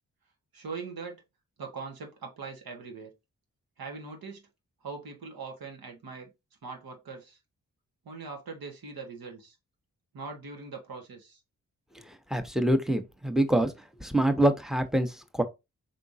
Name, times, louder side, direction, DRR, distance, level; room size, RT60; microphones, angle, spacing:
voice 1, 0.5-1.2 1.6-3.1 3.8-4.4 4.8-6.3 6.6-7.4 8.0-9.6 10.1-11.4, right 4 dB, 75° right, 1.6 m, -41 dB
voice 2, 12.3-13.7 14.0-15.4, right 1 dB, ahead, 1.0 m, -25 dB
4.9 x 3.6 x 2.7 m
cardioid pair, 45°, 36 cm